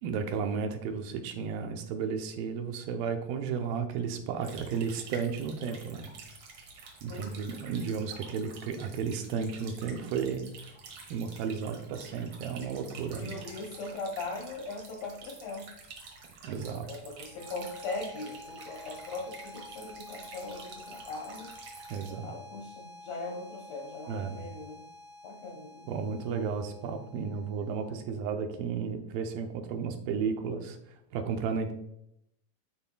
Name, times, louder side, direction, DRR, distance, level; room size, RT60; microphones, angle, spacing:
voice 1, 0.0-6.1 7.0-10.5 11.1-13.3 16.4-16.9 21.9-22.3 24.1-24.5 25.9-31.7, right 6 dB, 80° right, 5 dB, 2.4 m, -33 dB
sound 1, 4.4-22.1, right 4 dB, 60° right, 2.0 m, -49 dB
voice 2, 7.1-7.7 13.1-15.7 16.9-21.5 22.1-24.8 25.2-25.9, left 3 dB, 75° left, -1 dB, 1.6 m, -40 dB
sound 2, 17.2-28.2, left 2 dB, 60° left, 1.3 m, -50 dB
12.0 x 4.3 x 2.2 m, 0.77 s
omnidirectional pair, 4.2 m